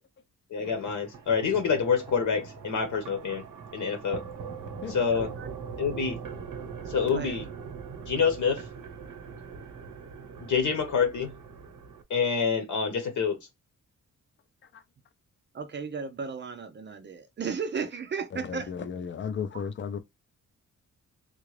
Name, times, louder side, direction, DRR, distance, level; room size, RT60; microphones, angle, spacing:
voice 1, 0.5-3.4 3.7-4.2 4.9-5.3 5.8-6.2 6.9-7.5 8.0-8.7 10.4-11.3 12.1-13.4, left 6 dB, 70° left, 1.0 m, -27 dB
sound 1, 0.6-12.0, right 6 dB, 85° right, 0.9 m, -41 dB
voice 2, 5.1-5.5 7.1-7.4 15.5-18.9, right 5 dB, 35° right, 0.5 m, -35 dB
voice 3, 18.3-20.0, left 7 dB, 40° left, 0.5 m, -34 dB
3.7 x 2.4 x 3.1 m
wide cardioid pair, 165°, 31 cm